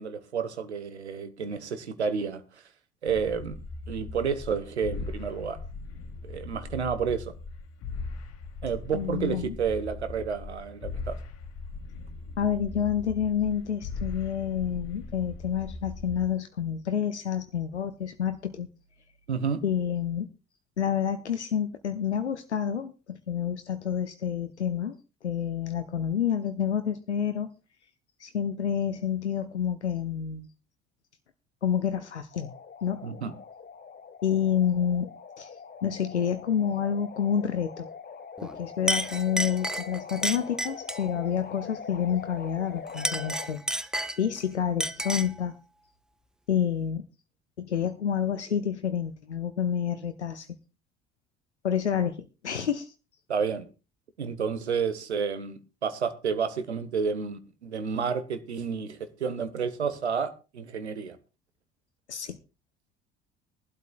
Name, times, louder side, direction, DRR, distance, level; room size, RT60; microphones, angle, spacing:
voice 1, 0.0-2.4 3.0-3.5 3.9-5.6 6.2-7.3 8.6-11.2 19.3-19.6 33.0-33.3 53.3-53.6 54.2-61.2, right 6 dB, 80° right, 1.1 m, -30 dB
sound 1, 3.1-16.3, left 3 dB, 45° left, 1.9 m, -40 dB
voice 2, 8.9-9.6 12.4-18.7 19.6-20.3 20.8-25.0 25.2-27.5 28.2-30.5 31.6-32.5 32.8-33.1 34.2-35.1 35.4-35.6 35.8-37.9 38.4-43.6 44.2-45.5 46.5-47.0 47.6-50.5 51.6-52.9 62.1-62.4, left 8 dB, 85° left, 0.7 m, -28 dB
sound 2, 32.3-43.5, left 6 dB, 30° left, 1.3 m, -43 dB
Chink clink, 38.4-38.6 38.9-41.1 42.9-44.4 44.8-45.4, right 1 dB, ahead, 0.7 m, -31 dB
20.5 x 12.0 x 2.3 m
figure-of-eight pair, 55°, 33 cm